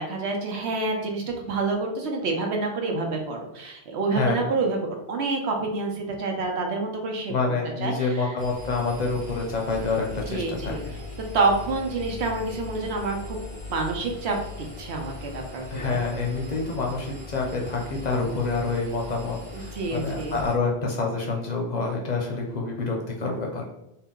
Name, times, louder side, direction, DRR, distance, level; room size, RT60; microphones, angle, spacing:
voice 1, 0.0-4.8 5.1-7.3 7.8-8.3 10.3-10.8 11.3-13.4 13.7-16.0 19.5-20.3, right 3 dB, 85° right, 2 dB, 1.0 m, -28 dB
voice 2, 4.1-4.4 7.3-10.9 15.7-23.6, left 3 dB, 50° left, 0 dB, 0.6 m, -27 dB
Engine, 8.4-20.5, left 3 dB, 25° right, 0.8 m, -39 dB
3.7 x 2.2 x 3.6 m, 0.85 s
omnidirectional pair, 1.1 m